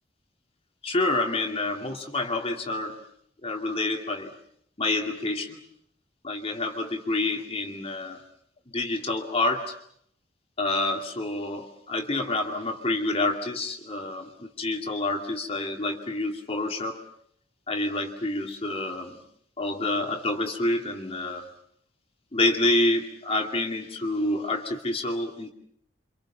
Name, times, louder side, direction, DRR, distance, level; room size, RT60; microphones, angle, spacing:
voice 1, 0.8-2.9 3.4-4.3 4.8-5.6 6.2-8.2 8.7-9.7 10.6-17.0 17.7-19.2 19.6-21.5 22.3-25.5, left 2 dB, 35° left, 3 dB, 2.5 m, -28 dB
30.0 x 26.0 x 5.8 m, 0.68 s
head